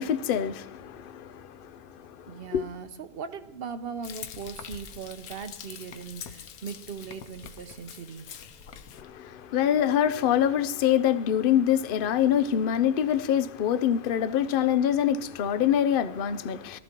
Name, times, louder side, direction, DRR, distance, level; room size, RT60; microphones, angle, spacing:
voice 1, 0.0-2.6 8.9-16.8, left 9 dB, 60° left, 0.5 m, -25 dB
voice 2, 2.3-8.3, right 6 dB, 50° right, 0.8 m, -39 dB
Frying (food), 4.0-9.0, left 8 dB, 80° left, 1.2 m, -44 dB
22.0 x 14.0 x 3.0 m
omnidirectional pair, 1.5 m